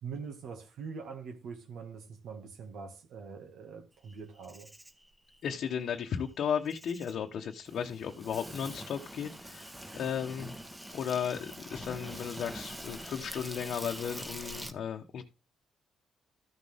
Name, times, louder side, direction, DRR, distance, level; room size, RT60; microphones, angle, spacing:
voice 1, 0.0-4.7, right 5 dB, 75° right, 2.0 m, -43 dB
Insect, 4.1-14.7, right 1 dB, 10° right, 1.4 m, -45 dB
voice 2, 5.4-10.6 10.9-15.2, left 8 dB, 65° left, 1.1 m, -35 dB
14.0 x 6.3 x 3.6 m
cardioid pair, 90°, 0 cm